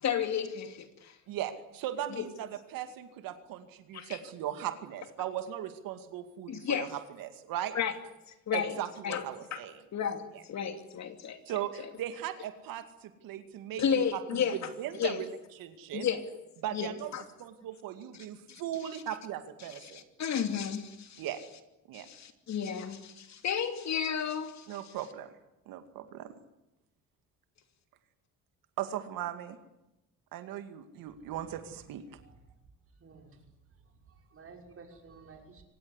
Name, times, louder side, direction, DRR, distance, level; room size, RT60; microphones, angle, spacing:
voice 1, 0.0-1.1 2.1-2.3 3.9-4.2 6.5-6.9 7.7-7.9 8.5-8.7 9.0-9.2 9.5-9.6 9.9-11.4 13.8-14.7 15.0-15.2 15.9-16.2 16.7-17.2 18.5-18.6 19.8-21.2 21.9-24.7, left 8 dB, 55° left, 8 dB, 2.8 m, -32 dB
voice 2, 1.3-7.7 8.5-9.8 10.3-10.4 11.5-16.1 16.6-20.0 21.2-21.4 21.9-22.1 24.7-25.3 25.7-26.3 28.8-29.6 30.3-32.0, right 11 dB, 85° right, 8 dB, 2.4 m, -38 dB
voice 3, 33.0-33.4 34.1-35.6, right 4 dB, 40° right, 2 dB, 6.0 m, -53 dB
24.0 x 18.0 x 9.8 m, 0.94 s
cardioid pair, 115°, 33 cm